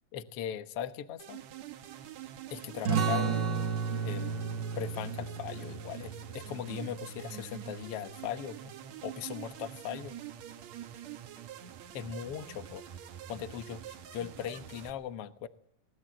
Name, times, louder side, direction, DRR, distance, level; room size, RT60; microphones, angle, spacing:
voice 1, 0.1-1.4 2.5-3.6 4.0-8.7 9.0-10.1 11.9-12.8 13.3-13.8 14.1-15.5, left 9 dB, 60° left, 10 dB, 1.8 m, -39 dB
sound 1, 1.2-14.9, right 10 dB, 65° right, 2.4 m, -46 dB
sound 2, 2.8-8.0, right 6 dB, 45° right, 1.5 m, -34 dB
23.0 x 19.5 x 7.6 m, 0.69 s
omnidirectional pair, 3.7 m